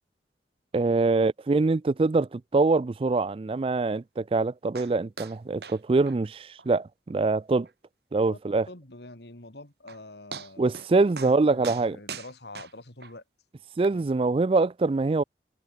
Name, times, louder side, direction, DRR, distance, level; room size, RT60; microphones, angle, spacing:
voice 1, 0.7-7.7 8.1-8.7 10.6-12.0 13.8-15.2, right 3 dB, 30° right, 0.4 m, -24 dB
sound 1, 4.7-4.9 5.2-5.4 5.6-5.8 6.1-6.2 6.6-6.7 7.1-7.2 7.6-7.7 9.4-9.5 9.9-10.0 10.3-10.9 11.2-11.4 11.6-13.1 13.8-13.9, right 5 dB, 65° right, 4.0 m, -40 dB
voice 2, 8.3-10.8 11.2-13.2 13.9-14.1, left 2 dB, 70° left, 3.3 m, -46 dB
head